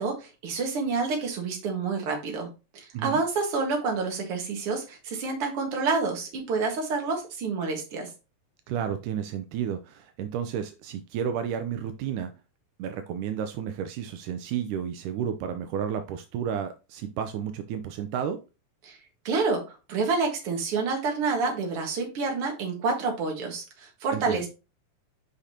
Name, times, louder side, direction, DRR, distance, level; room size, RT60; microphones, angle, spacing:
voice 1, 0.0-2.5 2.7-8.1 18.8-19.0 19.2-24.5, right 4 dB, 50° right, 2 dB, 2.3 m, -28 dB
voice 2, 8.7-12.4 12.8-18.4 24.1-24.5, right 8 dB, 80° right, 8 dB, 2.1 m, -32 dB
8.2 x 5.1 x 2.9 m, 0.30 s
omnidirectional pair, 3.6 m